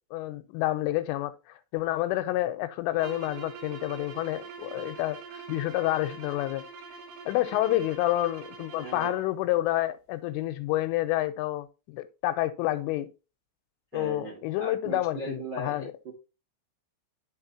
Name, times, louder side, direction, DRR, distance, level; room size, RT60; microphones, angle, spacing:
voice 1, 0.1-6.6 7.3-13.1 13.9-15.9, left 15 dB, 85° left, 3.2 m, -29 dB
sound 1, 2.9-9.3, right 5 dB, 70° right, 2.0 m, -43 dB
voice 2, 13.9-16.1, right 2 dB, 85° right, 0.9 m, -38 dB
11.0 x 4.2 x 2.8 m
omnidirectional pair, 5.7 m